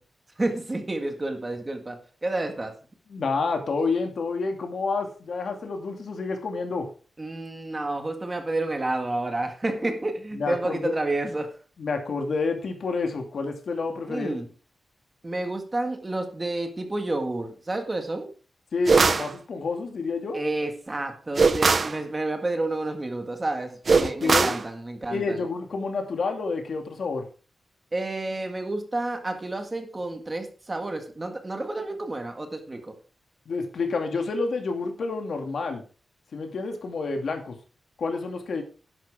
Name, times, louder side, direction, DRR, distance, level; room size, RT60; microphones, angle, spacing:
voice 1, 0.4-2.7 7.2-11.6 14.1-14.5 15.2-18.3 20.3-25.4 27.9-32.9, right 2 dB, 20° right, 5 dB, 1.8 m, -30 dB
voice 2, 3.1-6.9 10.3-10.9 11.8-14.4 18.7-20.4 24.0-24.6 25.1-27.3 33.5-35.8 36.3-37.5 38.0-38.6, left 4 dB, 60° left, 4 dB, 2.5 m, -29 dB
sound 1, 18.9-19.3 21.4-22.0 23.9-24.6, right 4 dB, 40° right, 0.6 m, -20 dB
11.5 x 11.0 x 3.6 m, 0.38 s
wide cardioid pair, 175°, 0 cm